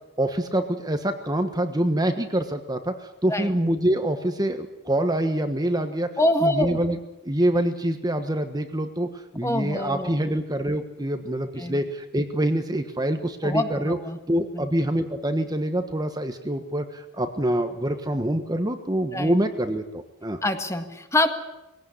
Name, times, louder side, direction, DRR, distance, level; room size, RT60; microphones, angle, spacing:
voice 1, 0.2-6.1 6.4-7.0 7.2-9.1 9.3-14.0 14.3-20.4, right 1 dB, 20° right, 7 dB, 1.3 m, -25 dB
voice 2, 6.2-6.8 9.4-10.2 11.6-11.8 13.4-14.2 14.5-14.7 19.1-19.3 20.4-21.3, left 1 dB, 15° left, 7 dB, 1.8 m, -25 dB
21.5 x 17.0 x 9.9 m, 0.97 s
head